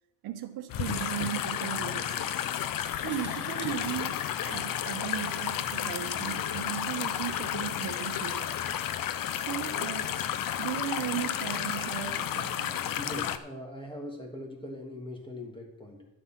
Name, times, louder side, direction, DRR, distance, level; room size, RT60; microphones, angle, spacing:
voice 1, 0.2-2.3 3.0-8.5 9.3-10.2 10.6-12.9, right 12 dB, 80° right, 8 dB, 1.2 m, -37 dB
sound 1, 0.7-13.4, left 10 dB, 60° left, 0.8 m, -32 dB
sound 2, 3.0-7.5, right 3 dB, 30° right, 2.8 m, -55 dB
voice 2, 13.0-16.1, left 1 dB, 15° left, 2 dB, 2.7 m, -41 dB
11.5 x 7.5 x 6.0 m, 0.88 s
cardioid pair, 115°, 38 cm